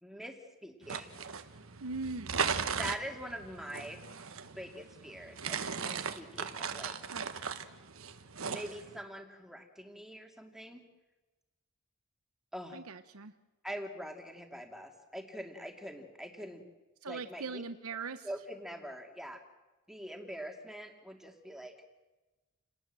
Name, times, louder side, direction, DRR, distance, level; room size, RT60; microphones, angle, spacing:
voice 1, 0.0-1.2 2.8-4.0 4.5-7.0 8.5-10.9 12.5-12.8 13.6-16.6 17.1-17.6 18.2-19.4 19.9-21.7, equal, ahead, 3 dB, 2.4 m, -44 dB
sound 1, 0.8-9.0, right 6 dB, 75° right, 1.4 m, -38 dB
voice 2, 1.8-2.5 7.1-7.3 12.7-13.3 17.0-18.3, right 4 dB, 90° right, 10 dB, 1.0 m, -40 dB
29.5 x 19.0 x 7.7 m, 1.2 s
head